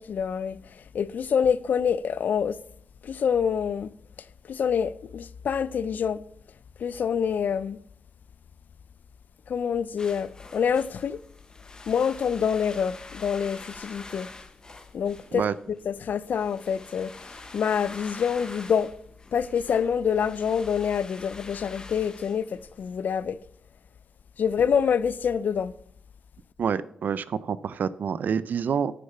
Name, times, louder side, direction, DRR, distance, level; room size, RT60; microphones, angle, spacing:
voice 1, 0.0-2.6 3.0-3.9 4.5-6.2 6.8-7.8 9.5-11.2 11.9-14.3 14.9-15.4 15.7-18.9 19.3-23.4 24.4-25.7, left 7 dB, 70° left, 0.4 m, -26 dB
sound 1, 10.0-23.0, left 2 dB, 25° left, 0.9 m, -46 dB
voice 2, 26.6-28.9, right 7 dB, 70° right, 0.5 m, -27 dB
9.3 x 6.8 x 5.5 m
wide cardioid pair, 105°, 3 cm